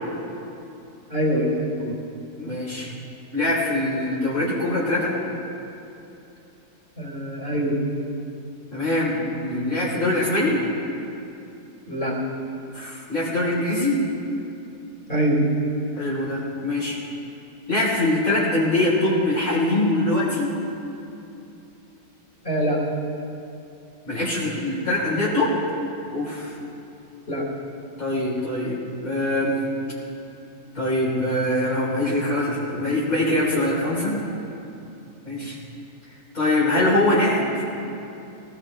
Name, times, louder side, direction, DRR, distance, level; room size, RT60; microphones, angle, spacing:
voice 1, 1.1-1.9 7.0-7.8 11.9-12.1 15.1-15.5 22.4-22.8 27.3-27.5, equal, 35° left, -4 dB, 4.1 m, -24 dB
voice 2, 2.4-2.9 3.3-5.1 8.7-10.6 12.7-14.0 16.0-17.0 17.7-20.5 24.1-25.6 26.1-26.6 28.0-29.6 30.7-34.2 35.3-35.6 36.3-37.6, left 1 dB, 60° left, -8 dB, 4.1 m, -23 dB
19.5 x 19.0 x 3.2 m, 2.8 s
omnidirectional pair, 1.7 m